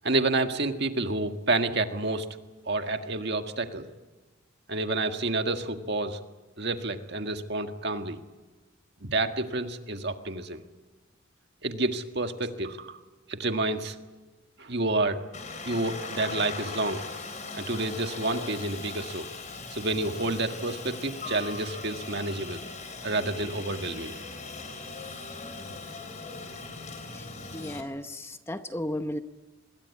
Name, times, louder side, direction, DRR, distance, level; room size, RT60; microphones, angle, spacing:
voice 1, 0.0-2.3 2.7-3.9 4.7-6.2 6.6-8.2 9.0-10.6 11.6-13.0 13.3-13.9 14.6-15.2 15.6-17.0 17.5-19.3 19.7-22.6 23.0-24.1, right 2 dB, 55° right, 6 dB, 1.8 m, -29 dB
Aircraft, 15.3-27.8, left 3 dB, 35° left, 3.8 m, -39 dB
voice 2, 27.5-29.2, left 1 dB, 10° left, 8 dB, 0.9 m, -34 dB
26.5 x 21.5 x 8.5 m, 1.2 s
head